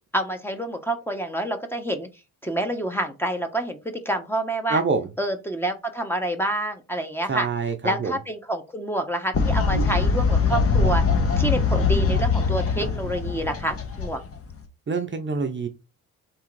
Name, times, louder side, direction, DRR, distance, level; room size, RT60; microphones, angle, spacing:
voice 1, 0.1-2.1 2.4-4.8 5.2-7.5 7.8-11.0 11.4-14.2, right 1 dB, 5° left, 6 dB, 1.0 m, -28 dB
voice 2, 4.7-5.1 7.3-8.2 14.9-15.7, right 4 dB, 35° right, 6 dB, 0.7 m, -25 dB
Fowl, 9.3-14.6, left 4 dB, 40° left, 1.1 m, -22 dB
3.6 x 3.1 x 4.6 m, 0.28 s
supercardioid pair, 70°, 35 cm